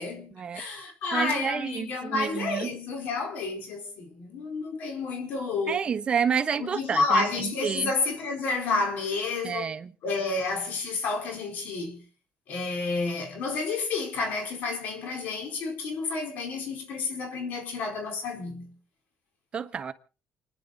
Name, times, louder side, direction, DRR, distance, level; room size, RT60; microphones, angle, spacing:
voice 1, 0.0-5.8 6.6-9.7 10.0-12.0 12.5-18.7, left 3 dB, 70° left, 4.6 m, -30 dB
voice 2, 1.1-2.7 5.7-7.9 9.4-9.9 19.5-19.9, right 7 dB, 35° right, 1.2 m, -29 dB
29.0 x 10.5 x 4.2 m
cardioid pair, 130°, 3 cm